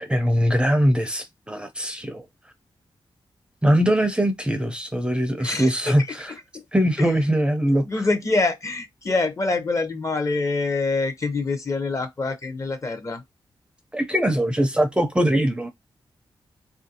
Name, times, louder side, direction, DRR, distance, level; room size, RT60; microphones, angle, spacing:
voice 1, 0.0-2.2 3.6-6.3 6.7-7.8 13.9-15.7, equal, 10° right, 0.5 m, -21 dB
voice 2, 5.4-5.7 6.5-6.6 7.0-7.1 7.9-13.2, left 3 dB, 35° left, 0.7 m, -25 dB
3.1 x 2.5 x 2.7 m
wide cardioid pair, 110°, 9 cm